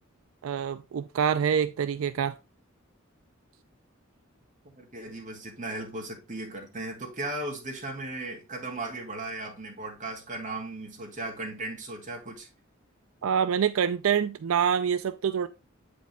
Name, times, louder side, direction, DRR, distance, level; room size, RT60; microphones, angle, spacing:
voice 1, 0.4-2.3 13.2-15.5, right 7 dB, 85° right, 0.4 m, -26 dB
voice 2, 4.8-12.5, right 2 dB, 40° right, 2.3 m, -36 dB
8.0 x 5.2 x 3.4 m
head